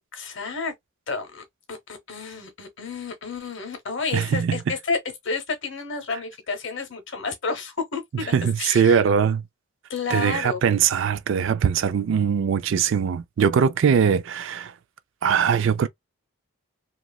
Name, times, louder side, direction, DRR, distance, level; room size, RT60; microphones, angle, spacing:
voice 1, 0.1-0.7 1.1-5.0 5.2-9.0 9.9-10.6, left 4 dB, 55° left, 0.9 m, -31 dB
voice 2, 4.1-4.6 8.3-9.4 10.1-14.7 15.2-15.9, right 7 dB, 55° right, 0.3 m, -21 dB
2.9 x 2.4 x 2.3 m
head